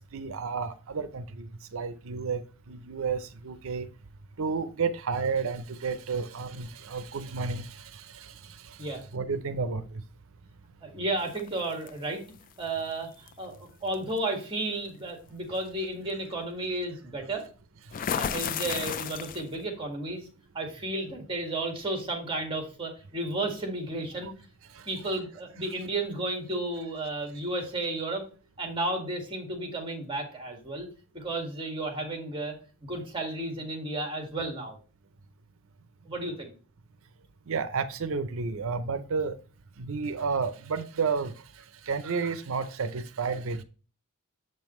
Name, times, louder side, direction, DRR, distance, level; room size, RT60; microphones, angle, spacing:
voice 1, 0.1-2.4 2.7-3.9 4.4-8.3 8.7-10.0 24.2-24.3 25.0-25.2 37.5-39.4 39.8-41.3 41.9-43.6, right 5 dB, 65° right, 11 dB, 0.6 m, -31 dB
voice 2, 10.8-12.2 12.6-17.5 18.1-20.3 20.5-24.3 24.9-28.3 28.6-30.9 31.1-32.5 32.8-34.8 36.1-36.5, right 2 dB, 25° right, 2 dB, 1.8 m, -33 dB
sound 1, 11.3-11.9 13.3-13.5 13.9-14.2 17.9-19.6, left 8 dB, 40° left, 0.3 m, -32 dB
7.6 x 5.4 x 3.1 m, 0.36 s
head